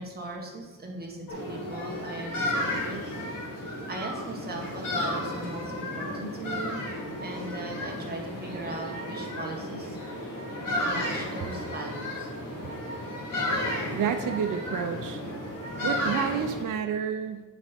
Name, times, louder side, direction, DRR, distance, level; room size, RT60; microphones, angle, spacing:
voice 1, 0.0-3.2 3.9-6.8 7.2-10.0 10.8-12.3, right 2 dB, 30° right, -1 dB, 1.5 m, -38 dB
sound 1, 1.3-16.6, left 1 dB, 75° left, 2.2 m, -33 dB
voice 2, 13.9-15.2 15.8-17.4, right 8 dB, 75° right, 6 dB, 0.6 m, -29 dB
8.8 x 4.3 x 5.2 m, 1.2 s
wide cardioid pair, 150°, 33 cm